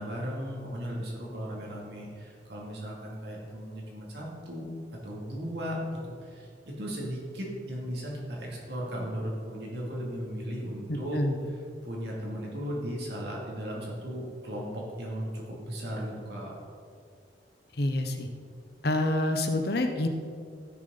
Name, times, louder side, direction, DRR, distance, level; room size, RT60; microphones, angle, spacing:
voice 1, 0.0-4.7 5.0-11.2 11.8-16.5, equal, 60° right, -3 dB, 2.7 m, -36 dB
voice 2, 10.9-11.4 17.7-18.3 18.8-20.1, left 1 dB, 55° left, 5 dB, 1.0 m, -27 dB
15.5 x 6.7 x 4.1 m, 2.2 s
head